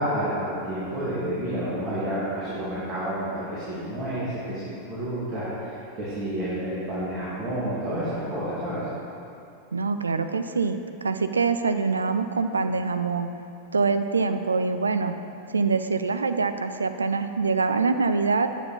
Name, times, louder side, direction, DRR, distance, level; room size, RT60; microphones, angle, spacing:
voice 1, 0.0-4.6 4.9-8.8, right 1 dB, 30° right, -10 dB, 2.3 m, -29 dB
voice 2, 9.7-13.3 13.7-15.1 15.5-18.5, right 4 dB, 75° right, 9 dB, 0.4 m, -24 dB
9.4 x 7.1 x 4.2 m, 2.6 s
figure-of-eight pair, 90°, 0 cm